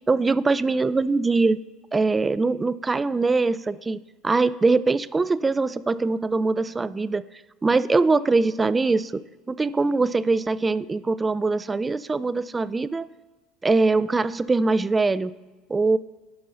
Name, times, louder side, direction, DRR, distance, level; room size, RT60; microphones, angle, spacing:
voice 1, 0.0-1.6 1.9-7.2 7.6-9.2 9.5-13.1 13.6-15.3 15.7-16.0, right 3 dB, 20° right, 16 dB, 0.3 m, -22 dB
11.0 x 5.5 x 3.9 m, 1.3 s
figure-of-eight pair, 65°, 0 cm